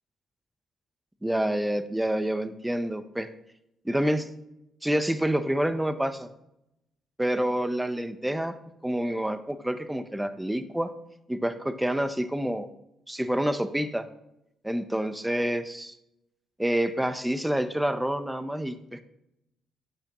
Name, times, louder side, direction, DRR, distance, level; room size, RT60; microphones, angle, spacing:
voice 1, 1.2-3.3 3.8-4.3 4.8-6.3 7.2-8.5 8.8-10.9 11.3-12.7 13.1-14.1 14.6-16.0 16.6-19.0, right 1 dB, 5° right, 11 dB, 0.6 m, -28 dB
10.5 x 5.8 x 2.9 m, 0.84 s
cardioid pair, 90°, 0 cm